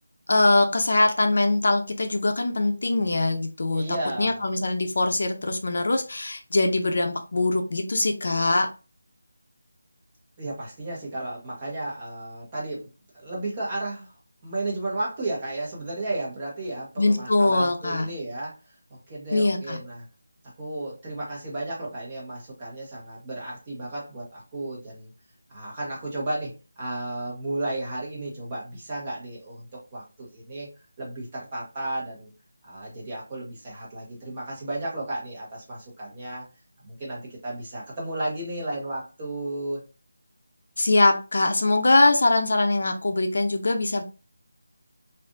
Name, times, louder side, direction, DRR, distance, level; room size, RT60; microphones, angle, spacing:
voice 1, 0.3-3.8 4.2-8.7 17.0-18.1 19.3-19.8 40.8-44.0, left 2 dB, 55° left, 5 dB, 0.5 m, -22 dB
voice 2, 3.7-4.4 10.4-12.9 13.1-14.1 14.4-18.6 18.9-20.0 20.6-25.1 25.5-30.7 31.0-32.3 32.6-36.5 36.8-39.8, right 2 dB, 20° right, -4 dB, 1.1 m, -33 dB
3.3 x 2.5 x 2.5 m, 0.31 s
figure-of-eight pair, 175°, 0 cm